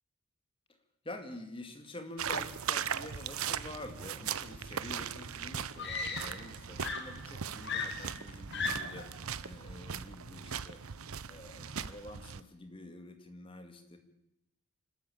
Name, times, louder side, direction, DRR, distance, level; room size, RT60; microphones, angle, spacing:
voice 1, 1.0-10.8 11.3-14.0, left 1 dB, 25° left, 7 dB, 2.3 m, -47 dB
sound 1, 2.2-12.4, right 7 dB, 80° right, 0.9 m, -39 dB
Screaming, 4.9-5.0 5.8-6.5 6.8-9.1 10.1-10.3, left 4 dB, 50° left, 2.5 m, -37 dB
25.5 x 13.0 x 8.8 m, 0.86 s
head